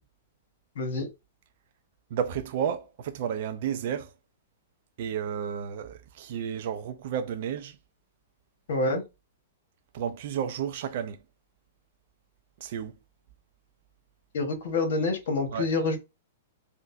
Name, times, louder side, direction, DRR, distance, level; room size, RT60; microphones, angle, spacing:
voice 1, 0.8-1.1 8.7-9.0 14.3-16.0, left 3 dB, 65° left, 1.1 m, -27 dB
voice 2, 2.1-4.1 5.0-7.8 9.9-11.2 12.6-13.0 15.5-15.9, right 8 dB, 55° right, 0.5 m, -32 dB
3.7 x 2.2 x 2.6 m
hypercardioid pair, 115°, 0 cm